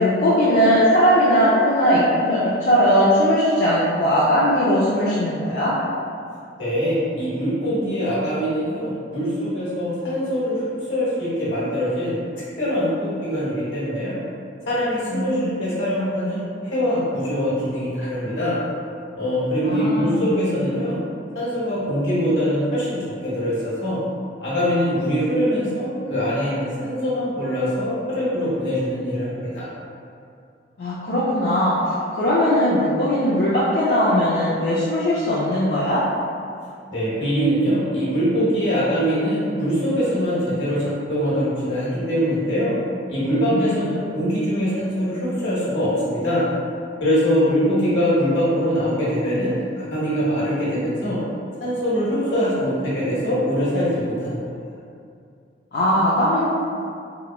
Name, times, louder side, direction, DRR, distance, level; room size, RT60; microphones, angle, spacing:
voice 1, 0.0-5.7 15.1-15.6 19.6-20.4 30.8-31.8 32.1-36.0 43.2-43.8 47.7-47.8 55.7-56.4, equal, 55° left, -8 dB, 0.3 m, -19 dB
voice 2, 6.6-10.6 10.9-12.2 12.6-14.2 14.7-18.6 19.1-21.0 21.3-24.0 24.4-29.7 36.9-42.8 43.1-46.5 47.0-51.2 51.6-54.4, equal, 85° left, -9 dB, 1.0 m, -23 dB
2.9 x 2.1 x 2.2 m, 2.4 s
head